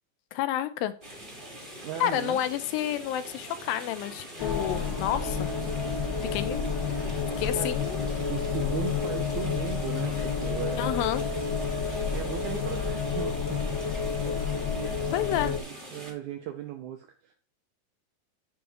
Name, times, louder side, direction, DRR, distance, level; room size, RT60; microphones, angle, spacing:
voice 1, 0.3-0.9 2.0-5.5 6.3-6.6 7.4-8.1 10.8-11.2 15.1-15.5, left 11 dB, 80° left, 11 dB, 2.3 m, -30 dB
sound 1, 1.0-16.1, right 1 dB, 30° right, 0.9 m, -43 dB
voice 2, 1.8-2.4 7.6-7.8 8.3-11.1 12.1-13.6 14.8-15.0 15.4-17.3, right 9 dB, 80° right, 4 dB, 1.7 m, -37 dB
sound 2, 4.4-15.6, left 5 dB, 55° left, 1.2 m, -30 dB
7.9 x 3.5 x 6.3 m, 0.38 s
omnidirectional pair, 4.2 m